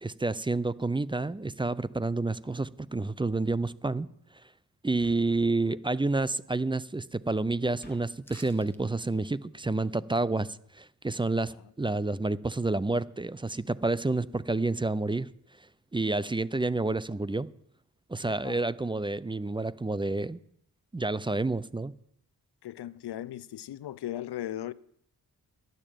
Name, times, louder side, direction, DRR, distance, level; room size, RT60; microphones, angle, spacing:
voice 1, 0.0-4.1 4.8-15.3 15.9-17.5 18.1-20.4 20.9-21.9, right 2 dB, 15° right, 0.4 m, -29 dB
sound 1, 5.0-5.5 7.8-8.0, left 1 dB, 25° left, 2.6 m, -52 dB
sound 2, 8.2-8.8 9.2-9.3, left 1 dB, 5° left, 1.3 m, -52 dB
voice 2, 18.2-18.6 22.6-24.7, left 12 dB, 85° left, 0.5 m, -38 dB
11.5 x 6.7 x 9.0 m
wide cardioid pair, 85°, 38 cm